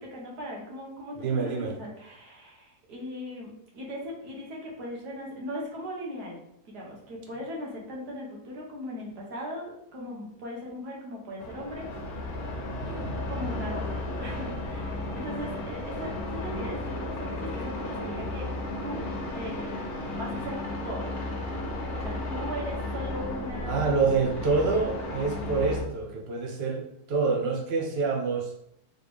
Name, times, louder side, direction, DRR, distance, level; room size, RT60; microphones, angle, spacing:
voice 1, 0.1-6.4 6.7-12.4 13.3-18.5 18.8-19.1 19.4-20.5 20.9-21.1 22.0-23.9, equal, 70° right, -3 dB, 1.7 m, -39 dB
voice 2, 1.2-1.8 12.8-13.2 23.6-28.5, right 4 dB, 50° right, 1 dB, 0.8 m, -27 dB
sound 1, 11.4-25.8, left 2 dB, 65° left, 1.3 m, -34 dB
4.1 x 3.1 x 3.4 m, 0.76 s
omnidirectional pair, 1.8 m